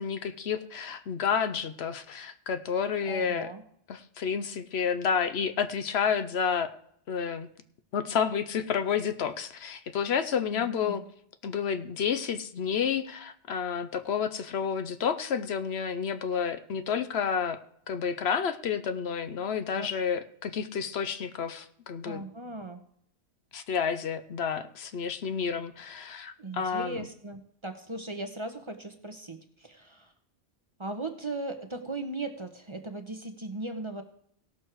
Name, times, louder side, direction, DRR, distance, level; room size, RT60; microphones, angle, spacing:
voice 1, 0.0-3.5 3.9-6.7 7.1-7.5 7.9-11.0 11.4-17.6 17.9-22.2 23.5-27.1, left 7 dB, 70° left, 10 dB, 1.0 m, -30 dB
voice 2, 3.0-3.6 10.4-11.0 19.7-19.9 22.0-22.8 26.4-30.1 30.8-34.0, right 2 dB, 30° right, 6 dB, 0.9 m, -38 dB
17.0 x 6.3 x 4.7 m, 0.68 s
omnidirectional pair, 1.1 m